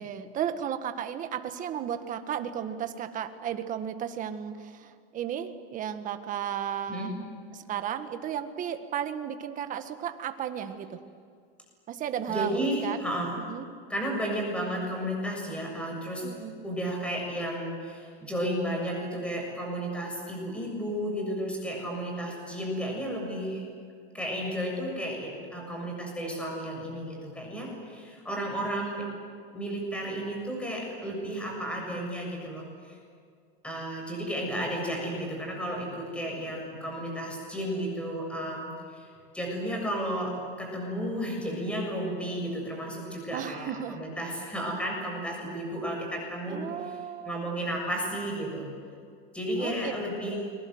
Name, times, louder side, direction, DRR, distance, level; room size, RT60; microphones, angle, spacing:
voice 1, 0.0-7.1 7.5-11.0 11.9-13.0 13.4-13.7 16.2-16.6 43.3-44.0 46.5-47.5 49.6-49.9 50.3-50.5, right 9 dB, 25° right, 8 dB, 1.7 m, -34 dB
voice 2, 12.3-13.4 13.9-16.2 16.6-23.6 24.1-29.0 29.5-32.9 33.6-39.1 39.3-40.3 40.6-47.0 47.2-48.7 49.3-50.4, equal, 5° left, 0 dB, 7.1 m, -33 dB
29.0 x 24.0 x 8.0 m, 2.2 s
supercardioid pair, 155°, 30 cm